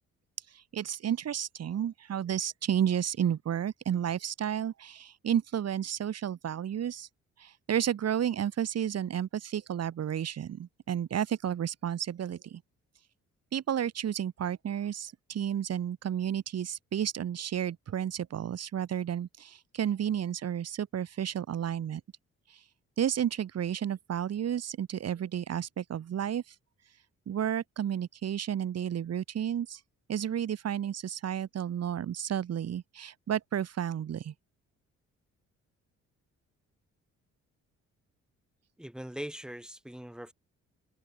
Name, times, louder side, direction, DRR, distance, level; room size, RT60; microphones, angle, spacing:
voice 1, 0.7-7.1 7.4-12.6 13.5-22.0 22.5-22.6 23.0-26.4 27.3-29.8 30.1-34.3, right 9 dB, 55° right, 2.1 m, -32 dB
voice 2, 38.8-40.3, equal, ahead, 1.6 m, -41 dB
cardioid pair, 90°, 30 cm